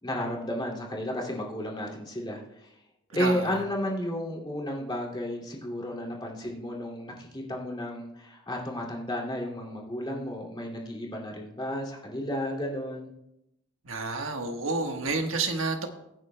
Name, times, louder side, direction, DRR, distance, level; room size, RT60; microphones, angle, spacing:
voice 1, 0.0-2.7 3.1-13.1, left 1 dB, 25° left, -2 dB, 2.4 m, -33 dB
voice 2, 3.1-3.6 13.8-15.9, right 3 dB, 85° right, 4 dB, 1.3 m, -30 dB
22.5 x 9.3 x 2.2 m, 0.86 s
head